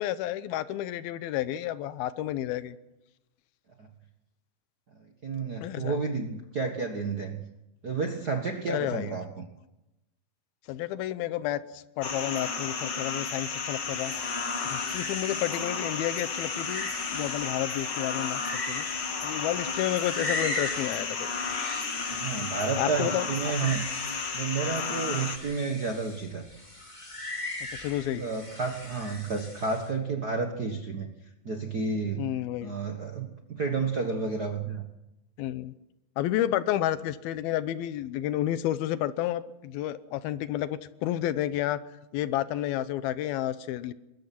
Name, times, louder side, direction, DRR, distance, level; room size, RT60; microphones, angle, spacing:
voice 1, 0.0-2.8 5.6-6.0 8.7-9.1 10.7-14.1 14.6-18.9 19.2-21.5 22.8-23.3 23.6-23.7 27.7-28.2 32.2-32.7 35.4-35.7 36.2-41.8 42.1-43.9, left 13 dB, 85° left, 14 dB, 2.8 m, -31 dB
voice 2, 5.2-7.4 7.8-9.4 22.1-23.8 24.3-26.4 28.1-31.1 31.4-32.3 32.6-34.8, right 4 dB, 85° right, 4 dB, 0.8 m, -31 dB
sound 1, 12.0-25.4, left 5 dB, 45° left, 1.6 m, -33 dB
sound 2, 13.8-29.9, left 1 dB, 15° left, 2.7 m, -40 dB
23.0 x 21.5 x 6.0 m, 0.94 s
omnidirectional pair, 4.2 m